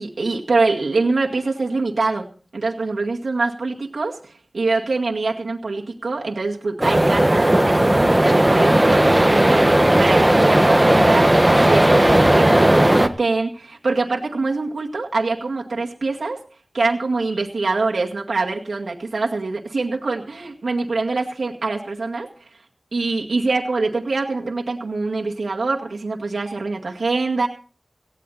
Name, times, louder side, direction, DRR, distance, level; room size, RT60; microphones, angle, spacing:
voice 1, 0.0-2.3 2.5-16.4 16.7-22.3 22.9-27.5, right 3 dB, 80° right, 0 dB, 2.1 m, -24 dB
sound 1, 6.8-13.1, right 1 dB, 15° right, 1.4 m, -15 dB
18.5 x 15.0 x 4.3 m, 0.38 s
wide cardioid pair, 55°, 0 cm